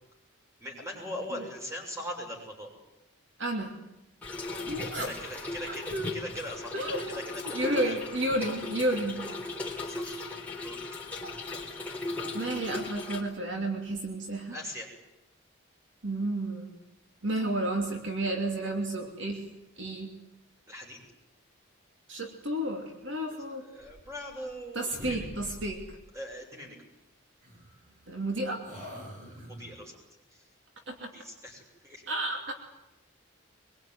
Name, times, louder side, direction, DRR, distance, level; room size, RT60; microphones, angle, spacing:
voice 1, 0.6-2.7 4.9-6.8 7.1-8.0 9.6-10.2 10.6-10.8 14.5-14.9 20.7-21.0 23.3-25.3 26.1-26.8 29.2-30.0 30.3-30.4 31.1-32.0, equal, 15° right, 0 dB, 7.1 m, -41 dB
voice 2, 3.4-3.8 4.7-5.1 5.7-6.1 6.7-7.1 7.4-9.2 12.3-14.5 16.0-16.7 17.2-19.4 19.8-20.1 22.1-23.6 24.7-25.8 28.1-28.6 30.9-31.1 32.1-32.5, right 1 dB, 60° right, 2 dB, 3.0 m, -31 dB
Trickle dribble / Fill (with liquid), 4.2-13.2, left 2 dB, 5° left, 4.1 m, -37 dB
sound 1, 23.8-24.6 24.9-26.1 27.4-28.3 28.6-29.9, equal, 40° right, 7.4 m, -46 dB
23.5 x 22.5 x 9.5 m, 0.93 s
head